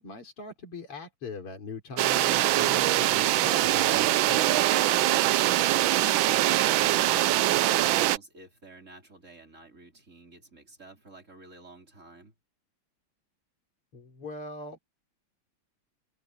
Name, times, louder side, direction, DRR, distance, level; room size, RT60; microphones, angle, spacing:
voice 1, 0.0-4.4 13.9-14.8, left 3 dB, 85° left, 5.0 m, -41 dB
sound 1, 2.0-8.2, right 15 dB, 75° right, 1.3 m, -23 dB
voice 2, 6.1-12.3, right 2 dB, 30° right, 5.1 m, -48 dB
omnidirectional pair, 2.4 m